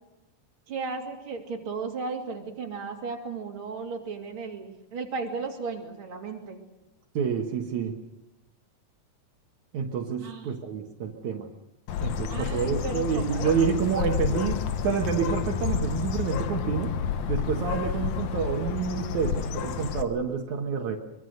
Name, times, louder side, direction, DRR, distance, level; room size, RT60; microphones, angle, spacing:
voice 1, 0.7-6.6 10.2-10.5 12.3-13.4, right 4 dB, 45° right, 1 dB, 3.4 m, -35 dB
voice 2, 7.1-8.0 9.7-11.5 12.0-17.0 17.3-21.0, right 6 dB, 75° right, 2 dB, 2.8 m, -28 dB
Bird, 11.9-20.0, left 8 dB, 70° left, 2.3 m, -30 dB
24.0 x 22.5 x 6.6 m, 0.96 s
omnidirectional pair, 3.5 m